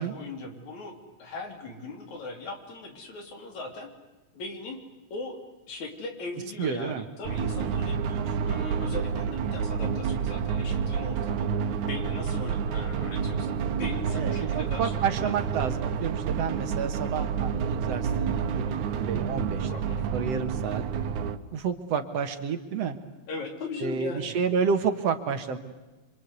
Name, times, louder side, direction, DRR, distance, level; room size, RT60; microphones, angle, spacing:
voice 1, 0.0-3.9 4.3-4.8 5.1-5.4 5.7-11.5 11.9-15.3 19.7-20.1 23.3-24.4, left 3 dB, 75° left, 4 dB, 4.7 m, -39 dB
voice 2, 6.6-7.0 14.1-19.8 20.1-20.8 21.5-23.0 23.8-25.6, right 6 dB, 60° right, 8 dB, 2.5 m, -30 dB
sound 1, 7.2-21.4, right 7 dB, 90° right, 2.5 m, -29 dB
26.5 x 26.0 x 8.3 m, 1.1 s
omnidirectional pair, 3.3 m